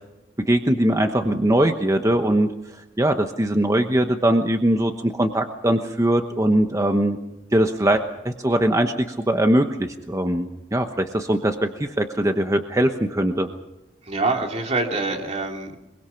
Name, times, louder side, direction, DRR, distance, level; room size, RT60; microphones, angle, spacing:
voice 1, 0.4-7.2 7.5-13.5, right 1 dB, 15° right, 5 dB, 1.0 m, -21 dB
voice 2, 14.0-15.8, right 3 dB, 35° right, 2 dB, 3.0 m, -25 dB
23.5 x 22.5 x 5.8 m, 0.95 s
head